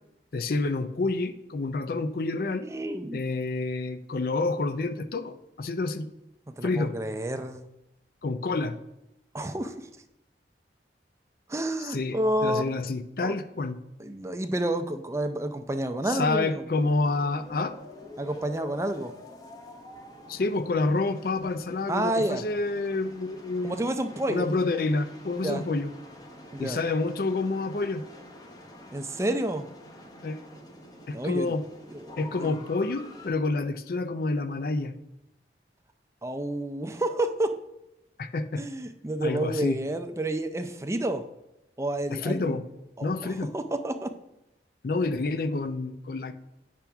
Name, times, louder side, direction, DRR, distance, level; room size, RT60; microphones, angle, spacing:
voice 1, 0.3-2.7 3.1-6.1 6.6-6.9 8.2-8.8 11.8-13.8 16.1-17.8 20.3-23.9 24.3-25.9 26.6-28.0 30.2-30.4 31.1-31.6 32.2-34.9 38.2-38.6 39.2-39.8 42.1-42.6 43.0-43.5 44.8-46.3, left 3 dB, 55° left, 11 dB, 0.5 m, -28 dB
voice 2, 2.6-3.2 6.6-7.6 9.3-9.9 11.5-12.8 13.2-13.3 14.0-16.6 18.2-19.1 21.9-22.5 23.6-24.5 25.3-25.6 26.5-26.8 28.9-29.7 31.1-31.5 31.9-32.5 36.2-37.5 38.6-41.2 41.8-42.6 43.0-44.1, right 1 dB, 15° right, 8 dB, 0.4 m, -30 dB
sound 1, 16.8-33.3, left 1 dB, 20° left, 0.8 m, -47 dB
8.4 x 5.9 x 3.4 m, 0.88 s
head